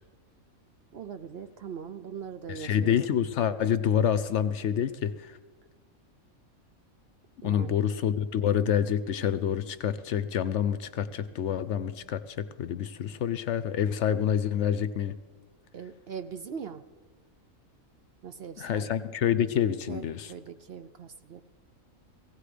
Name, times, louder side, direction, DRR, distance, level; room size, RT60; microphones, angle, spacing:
voice 1, 0.9-3.1 7.4-7.9 15.7-16.8 18.2-18.9 19.9-21.4, right 7 dB, 55° right, 10 dB, 0.7 m, -41 dB
voice 2, 2.5-5.4 7.4-15.1 18.6-20.3, left 9 dB, 65° left, 13 dB, 0.8 m, -27 dB
17.5 x 16.5 x 5.0 m, 1.3 s
omnidirectional pair, 1.4 m